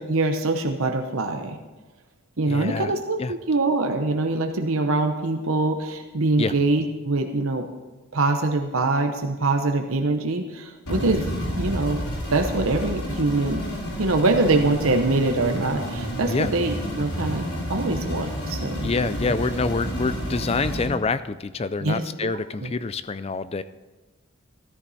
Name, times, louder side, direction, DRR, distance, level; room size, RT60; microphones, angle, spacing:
voice 1, 0.1-1.6 2.4-7.6 8.1-11.3 11.6-12.0 12.3-13.6 14.0-18.9 21.8-22.3 22.6-22.7, right 2 dB, 65° right, 4 dB, 0.9 m, -24 dB
voice 2, 2.5-2.9 3.2-3.3 6.4-6.5 16.3-16.5 18.8-23.6, left 4 dB, 25° left, 14 dB, 0.4 m, -26 dB
sound 1, 10.9-20.8, equal, 85° left, 4.3 m, -30 dB
13.5 x 13.5 x 4.2 m, 1.2 s
head